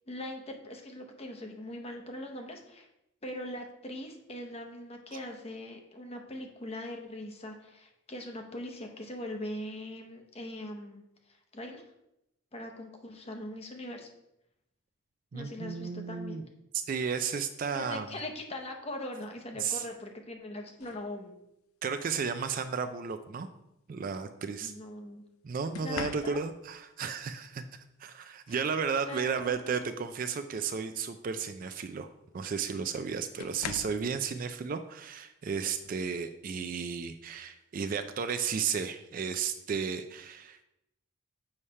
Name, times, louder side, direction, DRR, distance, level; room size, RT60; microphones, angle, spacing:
voice 1, 0.1-2.9 3.2-11.8 12.5-14.1 15.3-16.4 17.7-21.3 24.6-25.2 25.8-26.4 28.5-29.8, left 1 dB, 30° left, 3 dB, 0.8 m, -41 dB
voice 2, 15.3-16.4 16.7-18.1 19.6-19.8 21.8-23.5 23.9-24.7 25.4-32.1 32.3-40.6, right 6 dB, 40° right, 9 dB, 0.3 m, -33 dB
sound 1, 20.8-21.1 22.4-22.7 25.7-26.7 28.5-28.6 29.0-30.1 30.6-30.9 32.2-32.3 33.4-34.1 35.8-36.0 36.5-36.8, left 7 dB, 80° left, 0.4 m, -43 dB
7.1 x 3.3 x 5.4 m, 0.85 s
head